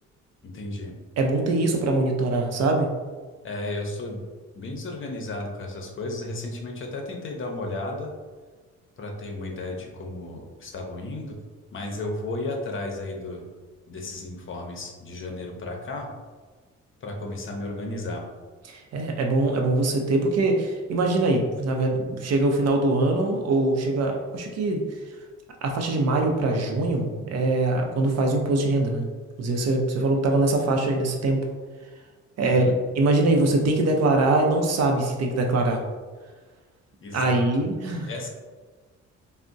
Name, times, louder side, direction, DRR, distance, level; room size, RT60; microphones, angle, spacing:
voice 1, 0.4-0.9 3.4-4.2 4.5-8.1 9.0-11.4 11.7-13.5 13.9-16.1 17.0-18.2 32.4-32.7 37.0-37.6 38.1-38.3, left 2 dB, 40° left, 1 dB, 0.6 m, -33 dB
voice 2, 1.2-2.9 18.7-24.8 25.6-29.1 29.4-31.4 32.4-32.6 33.0-35.8 37.1-38.1, right 2 dB, 60° right, 2 dB, 0.6 m, -23 dB
3.4 x 2.1 x 2.6 m, 1.4 s
cardioid pair, 90°, 30 cm